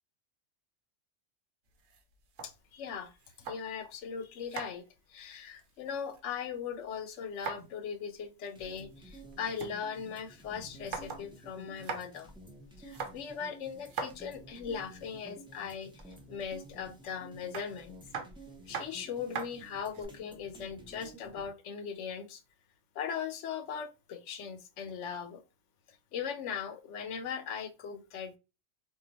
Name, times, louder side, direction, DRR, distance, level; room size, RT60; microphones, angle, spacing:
sound 1, 1.7-3.9 4.2-6.4 6.7-7.8 8.1-8.2 8.4-9.7 10.1-10.2 10.6-11.3 11.6-12.2 12.8-14.8 15.7-16.2 17.5-20.0, right 5 dB, 85° right, 1.0 m, -42 dB
voice 1, 2.4-3.1 3.4-4.8 5.1-12.3 12.8-18.0 18.7-22.4 22.9-25.4 25.9-28.4, left 7 dB, 80° left, 0.9 m, -39 dB
sound 2, 8.6-21.5, right 1 dB, 5° right, 0.4 m, -52 dB
2.5 x 2.3 x 3.9 m
omnidirectional pair, 1.2 m